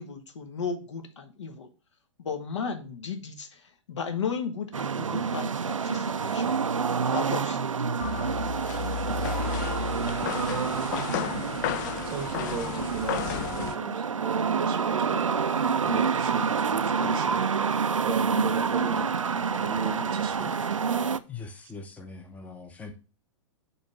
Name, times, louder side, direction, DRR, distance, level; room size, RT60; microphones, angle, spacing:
voice 1, 0.0-1.7 2.2-3.6 3.9-6.6 7.1-7.6, left 5 dB, 65° left, 1.2 m, -34 dB
sound 1, 4.7-21.2, right 6 dB, 80° right, 0.4 m, -28 dB
sound 2, 8.0-13.7, left 11 dB, 40° left, 0.4 m, -33 dB
voice 2, 12.0-17.4 18.0-19.1 19.5-20.7, right 5 dB, 30° right, 0.8 m, -35 dB
voice 3, 21.3-23.0, left 4 dB, 10° left, 0.7 m, -41 dB
5.3 x 3.5 x 5.4 m
figure-of-eight pair, 110°, 16 cm